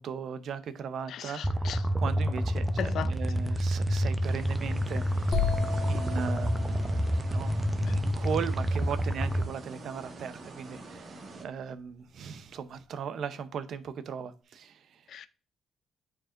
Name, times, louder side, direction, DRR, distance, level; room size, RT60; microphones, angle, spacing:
voice 1, 0.0-1.7 2.0-5.5 5.9-7.0 7.3-15.0, right 7 dB, 65° right, 0.7 m, -38 dB
voice 2, 1.1-1.8 2.8-3.1 15.1-15.3, left 9 dB, 70° left, 0.5 m, -36 dB
sound 1, 1.4-9.4, equal, 10° right, 0.7 m, -28 dB
sound 2, 4.2-11.5, right 3 dB, 45° right, 1.4 m, -46 dB
sound 3, 5.3-9.1, left 6 dB, 55° left, 1.2 m, -36 dB
8.8 x 4.7 x 2.5 m
cardioid pair, 90°, 0 cm